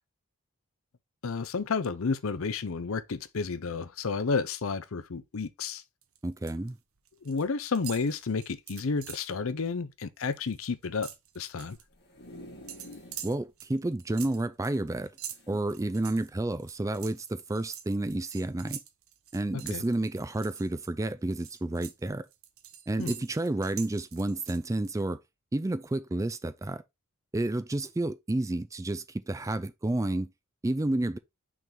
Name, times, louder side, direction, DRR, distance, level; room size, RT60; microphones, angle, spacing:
voice 1, 1.2-5.8 7.2-11.1 11.4-11.8 19.7-19.8 23.0-23.1, left 4 dB, 65° left, 0.6 m, -31 dB
sound 1, 6.0-6.7 7.0-7.4 7.7-9.3 9.7-9.9 10.2-11.8 12.7-20.9 21.3-24.9, right 10 dB, 70° right, 1.1 m, -45 dB
voice 2, 6.2-6.8 13.2-15.1 15.5-18.8 19.3-22.3 22.9-25.2 25.5-26.8 27.3-30.3 30.6-31.2, right 2 dB, 15° right, 0.4 m, -30 dB
sound 2, 11.7-13.3 13.7-13.8 14.0-14.1 15.2-16.2 16.9-17.0, left 1 dB, 50° left, 2.0 m, -49 dB
6.1 x 3.8 x 4.2 m
head